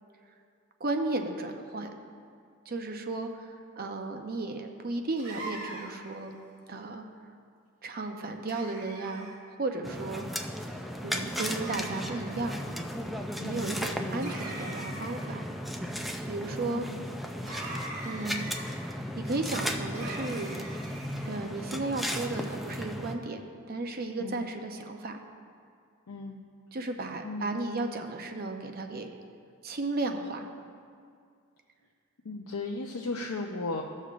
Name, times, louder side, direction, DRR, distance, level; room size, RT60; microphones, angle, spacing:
voice 1, 0.8-1.9 2.7-6.4 6.7-7.0 7.8-9.3 9.6-10.3 11.0-12.6 13.4-15.4 16.3-16.9 18.0-18.8 19.1-20.5 21.3-23.4 23.7-25.2 26.7-29.1 29.6-30.5, right 2 dB, 45° right, 5 dB, 0.7 m, -34 dB
sound 1, 5.2-6.1 8.5-9.4 11.3-12.2 14.2-15.3 17.4-18.6 19.9-21.3, right 2 dB, 75° right, 2.2 m, -42 dB
sound 2, 9.8-23.2, equal, ahead, 0.4 m, -35 dB
voice 2, 13.4-13.7 16.6-17.0 24.2-24.5 26.1-26.4 27.2-27.6 32.2-33.8, left 3 dB, 85° left, -1 dB, 0.7 m, -36 dB
17.0 x 6.4 x 2.5 m, 2.2 s
head